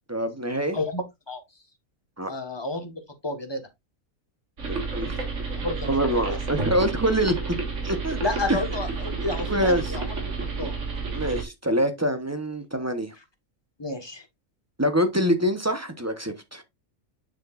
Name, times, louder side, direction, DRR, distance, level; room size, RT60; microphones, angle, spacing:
voice 1, 0.1-0.8 2.2-2.3 4.7-5.2 5.9-7.3 7.8-8.2 8.5-8.6 9.5-9.9 11.1-13.1 14.8-16.6, equal, 15° right, 0.7 m, -25 dB
voice 2, 0.7-1.4 2.3-3.6 5.6-5.9 6.3-6.4 8.2-10.7 13.8-14.2, left 2 dB, 20° left, 1.3 m, -31 dB
sound 1, 4.6-11.4, right 4 dB, 60° right, 2.0 m, -30 dB
6.8 x 6.7 x 2.4 m
omnidirectional pair, 1.5 m